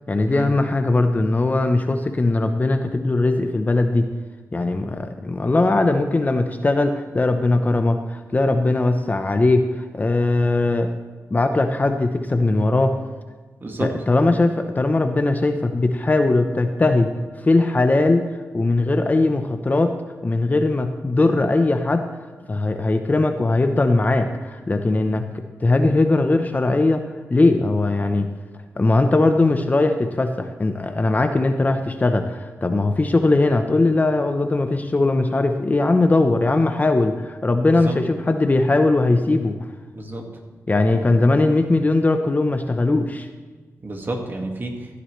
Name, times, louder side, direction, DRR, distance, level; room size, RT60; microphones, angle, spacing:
voice 1, 0.1-4.1 4.5-10.9 11.3-12.9 13.8-17.1 17.4-18.2 18.5-19.9 20.2-22.0 22.5-25.3 25.6-28.3 28.8-39.5 40.7-43.3, left 2 dB, 30° left, 6 dB, 0.8 m, -19 dB
voice 2, 13.6-13.9 37.7-37.9 39.9-40.2 40.9-41.1 43.8-44.7, right 1 dB, 40° right, 2 dB, 1.9 m, -29 dB
15.5 x 9.8 x 3.3 m, 1.4 s
cardioid pair, 80°, 6 cm